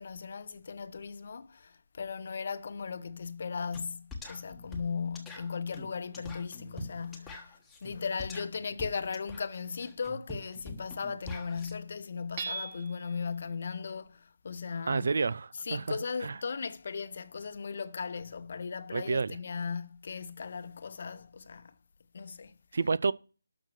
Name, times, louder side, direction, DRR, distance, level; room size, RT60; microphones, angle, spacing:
voice 1, 0.0-15.1 15.6-21.7 22.1-22.6, left 5 dB, 40° left, 0.9 m, -37 dB
sound 1, 3.7-3.9 4.1-11.7, left 1 dB, 5° left, 1.4 m, -44 dB
Hammer / Chink clink, 12.4-13.2, right 4 dB, 25° right, 1.2 m, -38 dB
voice 2, 14.9-16.0 16.2-16.3 18.9-19.3 22.7-23.1, right 4 dB, 45° right, 0.5 m, -29 dB
12.5 x 5.9 x 6.5 m
figure-of-eight pair, 150°, 0 cm